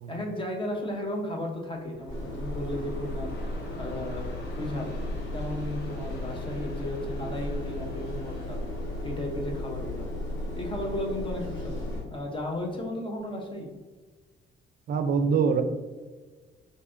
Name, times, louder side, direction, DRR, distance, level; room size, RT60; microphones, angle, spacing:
voice 1, 0.1-4.2 4.6-4.9 5.3-8.6 9.0-10.1 10.5-13.7, left 1 dB, 25° left, 0 dB, 0.8 m, -34 dB
Train, 1.7-10.9, left 1 dB, 60° left, 0.9 m, -47 dB
sound 1, 2.1-12.0, left 1 dB, 75° left, 1.4 m, -35 dB
voice 2, 14.9-15.6, right 6 dB, 55° right, 8 dB, 0.4 m, -24 dB
4.6 x 2.7 x 2.5 m, 1.3 s
cardioid pair, 90°, 20 cm